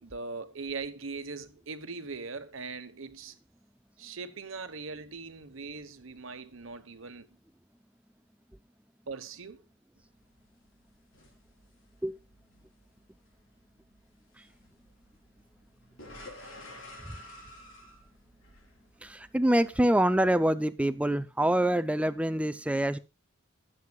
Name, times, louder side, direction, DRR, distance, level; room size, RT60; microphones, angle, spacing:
voice 1, 0.0-3.4 4.0-7.3 9.1-9.6, right 4 dB, 75° right, 1.1 m, -40 dB
sound 1, 10.0-20.5, left 1 dB, 70° left, 4.3 m, -53 dB
voice 2, 19.0-23.0, right 1 dB, 5° right, 0.4 m, -26 dB
20.5 x 7.6 x 2.3 m
head